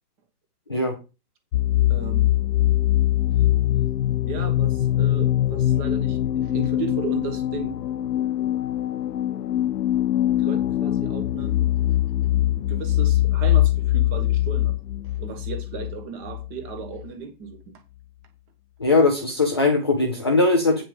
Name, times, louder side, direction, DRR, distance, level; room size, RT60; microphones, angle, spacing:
sound 1, 1.5-17.1, left 13 dB, 90° left, 0.9 m, -22 dB
voice 1, 1.9-2.3 4.2-7.7 10.4-11.6 12.5-14.8 15.0-17.6, right 6 dB, 15° right, 6 dB, 1.3 m, -35 dB
voice 2, 18.8-20.8, left 3 dB, 15° left, 2 dB, 0.5 m, -20 dB
9.5 x 5.8 x 5.2 m, 0.28 s
hypercardioid pair, 170°, 48 cm